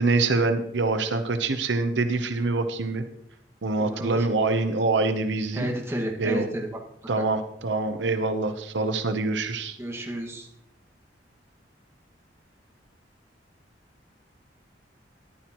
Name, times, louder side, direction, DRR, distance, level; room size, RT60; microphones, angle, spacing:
voice 1, 0.0-3.0 3.6-5.7 6.2-6.5 7.1-9.8, right 3 dB, 85° right, 8 dB, 0.8 m, -25 dB
voice 2, 3.8-4.3 5.5-6.7 7.2-7.3 9.8-10.5, equal, 15° right, 0 dB, 1.8 m, -31 dB
14.0 x 11.0 x 3.0 m, 0.75 s
head